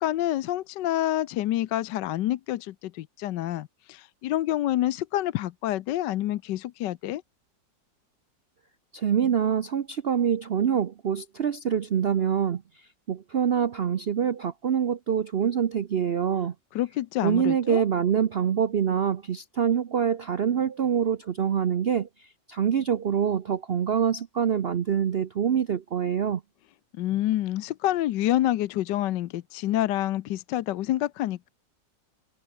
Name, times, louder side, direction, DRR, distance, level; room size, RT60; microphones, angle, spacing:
voice 1, 0.0-7.2 16.7-17.8 26.9-31.5, left 14 dB, 75° left, 1.3 m, -27 dB
voice 2, 8.9-12.6 13.1-16.5 17.2-22.1 22.5-26.4, right 8 dB, 70° right, 0.5 m, -25 dB
omnidirectional pair, 2.0 m